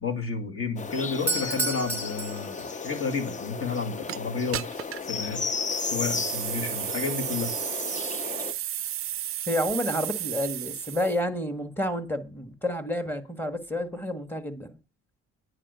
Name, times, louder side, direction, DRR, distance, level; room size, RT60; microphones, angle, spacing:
voice 1, 0.0-4.6 5.0-5.5 5.8-7.5, left 5 dB, 45° left, 2.1 m, -31 dB
sound 1, 0.8-8.5, left 5 dB, 25° left, 0.5 m, -34 dB
Doorbell, 1.1-3.1, right 2 dB, 10° right, 1.4 m, -31 dB
sound 2, 4.1-4.2 4.5-5.1 5.6-11.2, right 12 dB, 45° right, 0.4 m, -33 dB
voice 2, 9.5-14.8, left 1 dB, 5° left, 1.6 m, -30 dB
9.8 x 5.0 x 6.7 m
cardioid pair, 90°, 30 cm